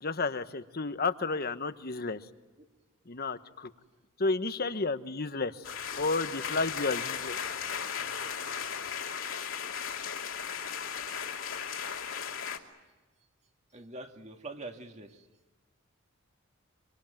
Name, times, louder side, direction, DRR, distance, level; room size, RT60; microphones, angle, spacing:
voice 1, 0.0-2.2 3.1-3.7 4.2-5.5 5.9-7.4, left 3 dB, 45° left, 11 dB, 1.2 m, -31 dB
sound 1, 5.6-12.6, left 7 dB, 65° left, 2.8 m, -36 dB
voice 2, 13.7-15.2, right 2 dB, 35° right, 5 dB, 2.2 m, -44 dB
26.0 x 25.0 x 9.1 m, 1.2 s
head